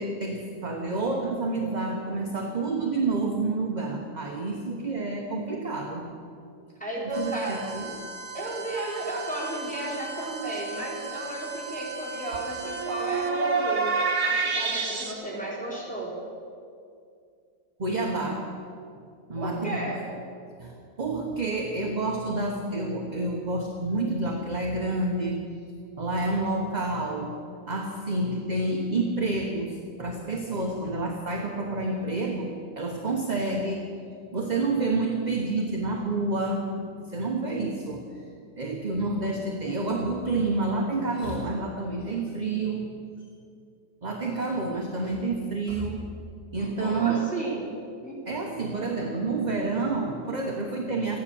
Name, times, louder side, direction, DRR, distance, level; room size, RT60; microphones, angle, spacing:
voice 1, 0.0-6.1 7.1-8.0 17.8-18.5 19.3-19.9 20.6-25.4 26.0-27.4 27.7-33.9 34.3-38.0 38.6-42.9 44.0-46.1 46.5-47.2 48.3-51.2, right 2 dB, 30° right, 1 dB, 0.9 m, -29 dB
voice 2, 6.8-7.6 8.3-16.2 19.4-20.0 46.6-47.6 48.0-48.1, right 2 dB, 5° left, -7 dB, 3.8 m, -33 dB
sound 1, 7.1-15.1, right 4 dB, 55° right, 2.0 m, -31 dB
14.5 x 10.5 x 7.0 m, 2.4 s
omnidirectional pair, 1.9 m